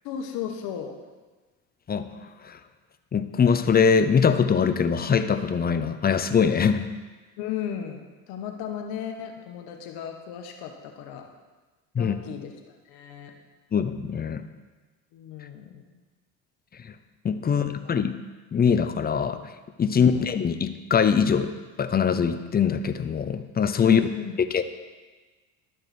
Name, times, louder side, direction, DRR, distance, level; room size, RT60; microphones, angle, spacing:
voice 1, 0.0-1.0 7.4-11.3 12.0-13.3 15.1-15.8 17.4-17.6 23.8-24.3, left 8 dB, 75° left, 4 dB, 1.4 m, -35 dB
voice 2, 3.1-6.9 11.9-12.2 13.7-14.4 17.2-18.2 18.5-19.5 19.8-21.5 21.8-24.0 24.5-24.6, left 6 dB, 25° left, 10 dB, 0.6 m, -22 dB
12.0 x 6.5 x 4.3 m, 1.3 s
cardioid pair, 100°, 37 cm